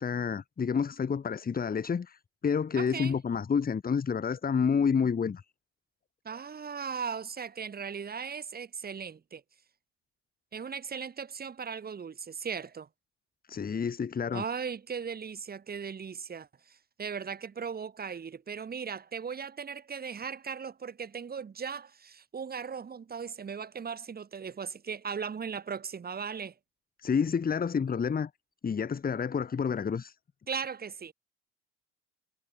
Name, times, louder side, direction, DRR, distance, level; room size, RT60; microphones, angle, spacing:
voice 1, 0.0-5.4 13.5-14.4 27.0-28.3 28.6-30.1, left 6 dB, 25° left, 1.6 m, -29 dB
voice 2, 2.8-3.2 6.2-9.4 10.5-12.9 14.3-26.5 30.5-31.1, right 6 dB, 25° right, 1.7 m, -38 dB
hypercardioid pair, 80°, 36 cm